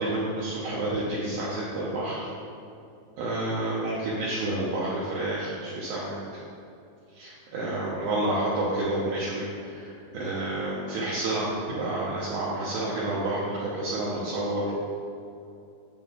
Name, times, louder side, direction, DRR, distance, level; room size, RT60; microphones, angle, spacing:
voice 1, 0.0-2.3 3.2-6.4 7.1-14.7, right 2 dB, 85° right, -7 dB, 2.1 m, -29 dB
11.0 x 6.9 x 2.5 m, 2.6 s
omnidirectional pair, 5.7 m